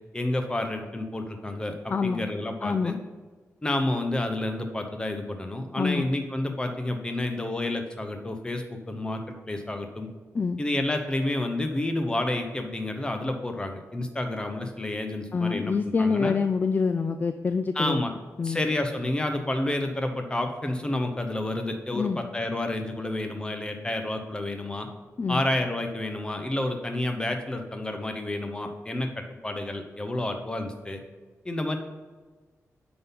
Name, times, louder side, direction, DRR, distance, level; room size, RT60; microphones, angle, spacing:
voice 1, 0.1-1.7 2.0-2.9 3.6-10.1 10.6-16.3 17.7-18.1 18.4-24.9 25.3-29.1 29.4-31.0 31.4-31.8, left 1 dB, 15° left, 5 dB, 0.9 m, -30 dB
voice 2, 1.9-2.2 2.6-3.0 5.8-6.1 10.3-10.6 15.3-18.0 18.4-18.7 21.9-22.2 25.2-25.4, left 5 dB, 35° left, 9 dB, 0.3 m, -26 dB
9.3 x 3.9 x 5.7 m, 1.4 s
wide cardioid pair, 130°, 5 cm